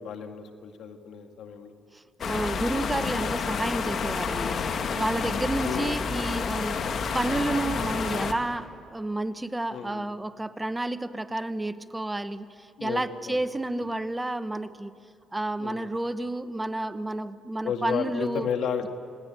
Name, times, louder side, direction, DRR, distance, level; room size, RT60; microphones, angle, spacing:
voice 1, 0.0-1.7 5.6-5.9 9.7-10.1 12.8-13.0 13.3-13.4 15.6-15.9 17.6-18.9, left 7 dB, 75° left, 6 dB, 1.9 m, -32 dB
voice 2, 1.9-4.6 5.0-14.9 15.3-18.5, right 2 dB, 15° right, 11 dB, 1.0 m, -31 dB
sound 1, 2.2-8.3, left 5 dB, 60° left, 1.9 m, -29 dB
29.5 x 19.0 x 9.2 m, 2.3 s
cardioid pair, 90°, 0 cm